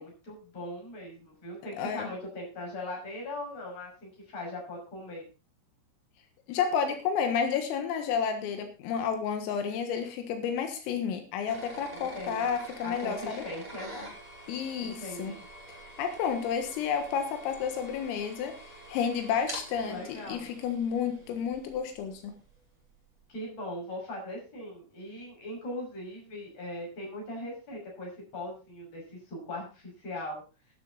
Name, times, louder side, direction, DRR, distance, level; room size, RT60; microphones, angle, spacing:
voice 1, 0.0-5.2 11.9-12.5 12.8-14.1 14.8-15.5 19.8-20.5 23.3-30.4, left 1 dB, 30° left, -1 dB, 6.7 m, -40 dB
voice 2, 1.8-2.1 6.5-13.4 14.5-15.3 15.7-22.3, left 7 dB, 90° left, 6 dB, 4.2 m, -31 dB
sound 1, 11.5-22.3, right 1 dB, 10° right, 4.8 m, -46 dB
12.0 x 11.5 x 4.0 m, 0.33 s
omnidirectional pair, 5.8 m